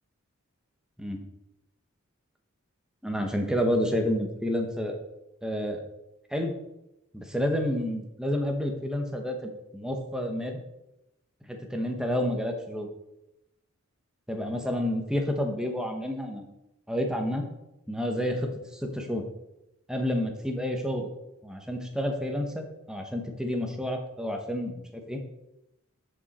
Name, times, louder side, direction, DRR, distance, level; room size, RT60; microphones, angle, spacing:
voice 1, 3.0-5.0 5.4-5.8 6.3-6.5 7.1-10.6 11.5-12.9 14.3-16.5 16.9-17.5 17.9-19.2 19.9-21.1 21.4-25.2, equal, 5° right, 3 dB, 1.1 m, -29 dB
13.0 x 5.3 x 4.2 m, 0.89 s
head